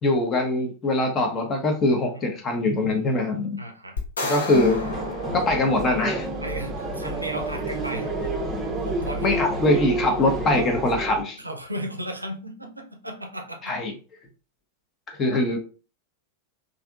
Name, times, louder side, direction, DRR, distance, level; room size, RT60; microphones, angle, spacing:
voice 1, 0.0-3.6 4.2-4.8 5.3-6.3 9.2-11.4 13.6-13.9 15.2-15.6, left 2 dB, 25° left, 3 dB, 0.8 m, -22 dB
voice 2, 3.6-4.0 6.4-8.1 8.9-9.3 11.4-13.7, right 1 dB, 85° right, 4 dB, 0.5 m, -35 dB
sound 1, 4.0-6.3, left 2 dB, 70° left, 0.8 m, -32 dB
sound 2, 4.5-11.2, right 1 dB, 15° right, 0.7 m, -29 dB
3.4 x 2.6 x 2.3 m, 0.35 s
figure-of-eight pair, 90°, 0 cm